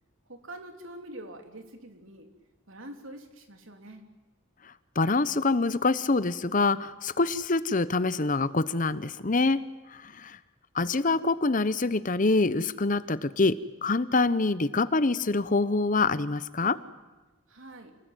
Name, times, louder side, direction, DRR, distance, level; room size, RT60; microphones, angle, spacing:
voice 1, 0.3-2.3 2.7-4.1 17.5-18.0, right 1 dB, 85° right, 5 dB, 3.2 m, -45 dB
voice 2, 4.9-9.6 9.9-10.4 10.7-16.8, left 3 dB, 40° left, 15 dB, 0.9 m, -25 dB
27.5 x 19.0 x 9.1 m, 1.2 s
head